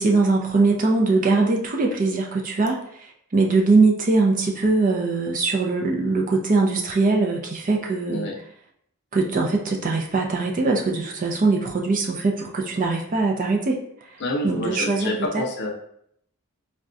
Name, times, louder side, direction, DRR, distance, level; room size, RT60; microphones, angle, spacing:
voice 1, 0.0-8.3 9.1-13.8 14.4-15.1, right 3 dB, 35° right, 0 dB, 0.5 m, -21 dB
voice 2, 14.2-15.7, left 1 dB, 50° left, 1 dB, 0.6 m, -27 dB
4.6 x 2.2 x 2.5 m, 0.69 s
head